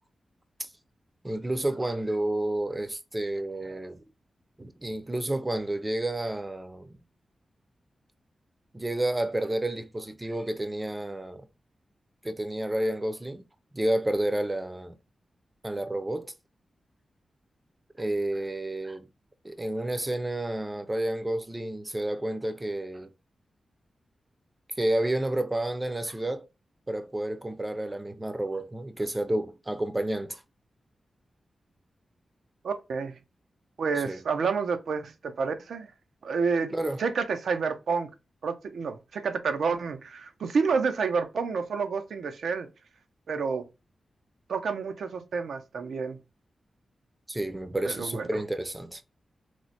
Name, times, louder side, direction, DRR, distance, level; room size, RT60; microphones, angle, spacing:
voice 1, 1.2-4.0 4.6-6.9 8.7-11.5 12.2-13.4 13.7-15.0 15.6-16.3 18.0-19.0 19.4-23.1 24.8-26.4 26.9-30.4 34.0-34.2 36.7-37.0 47.3-49.0, right 1 dB, 20° right, 0.5 m, -30 dB
voice 2, 32.6-33.2 33.8-35.9 36.2-36.7 37.0-38.1 38.4-42.7 43.3-43.6 44.5-46.2 47.8-48.4, right 5 dB, 85° right, 0.5 m, -29 dB
3.1 x 2.1 x 4.0 m
wide cardioid pair, 105°, 0 cm